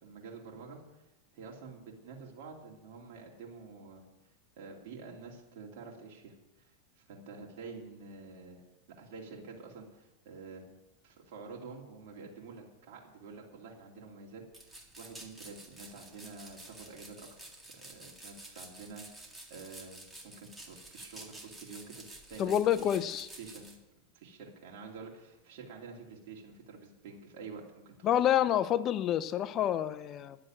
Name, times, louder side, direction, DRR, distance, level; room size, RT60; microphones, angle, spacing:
voice 1, 0.0-0.8 1.3-4.0 4.6-8.6 8.9-10.7 11.0-23.8 24.1-28.2, right 4 dB, 60° right, -2 dB, 2.7 m, -48 dB
sound 1, 14.5-23.8, right 1 dB, 10° right, 2.0 m, -50 dB
voice 2, 22.4-23.3 28.0-30.4, left 10 dB, 35° left, 14 dB, 0.5 m, -28 dB
11.0 x 7.7 x 8.9 m, 0.97 s
supercardioid pair, 135°, 0 cm